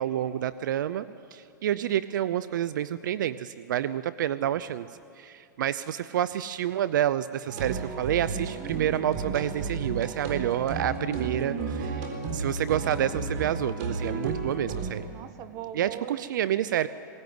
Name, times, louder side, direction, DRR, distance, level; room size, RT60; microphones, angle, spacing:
voice 1, 0.0-4.9 5.2-11.5 12.3-15.1 15.7-16.9, right 11 dB, 75° right, 15 dB, 0.6 m, -28 dB
sound 1, 7.5-14.9, right 4 dB, 55° right, 4.0 m, -33 dB
voice 2, 8.6-8.9 11.2-11.9 15.1-16.2 16.7-16.9, right 10 dB, 35° right, 11 dB, 1.3 m, -39 dB
21.5 x 18.0 x 9.5 m, 2.5 s
hypercardioid pair, 135°, 10 cm